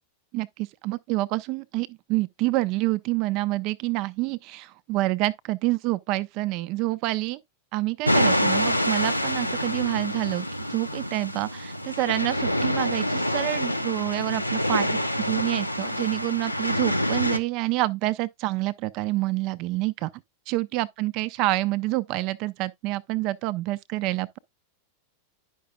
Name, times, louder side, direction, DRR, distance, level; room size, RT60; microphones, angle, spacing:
voice 1, 0.3-7.4 7.7-20.1 20.5-24.4, right 19 dB, 40° right, 0.4 m, -27 dB
sound 1, 8.0-17.4, left 1 dB, 90° left, 0.5 m, -26 dB
10.0 x 5.8 x 2.4 m
figure-of-eight pair, 90°, 0 cm